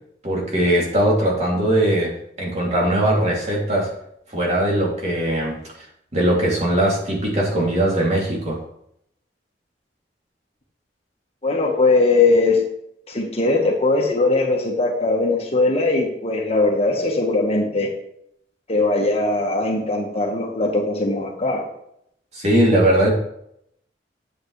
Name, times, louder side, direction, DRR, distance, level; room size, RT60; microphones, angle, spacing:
voice 1, 0.2-3.9 4.3-5.6 6.1-8.6 22.3-23.1, right 1 dB, 40° right, -3 dB, 2.9 m, -20 dB
voice 2, 11.4-12.6 13.1-17.9 18.7-21.7, left 3 dB, 35° left, 1 dB, 1.5 m, -20 dB
9.5 x 8.0 x 3.3 m, 0.74 s
head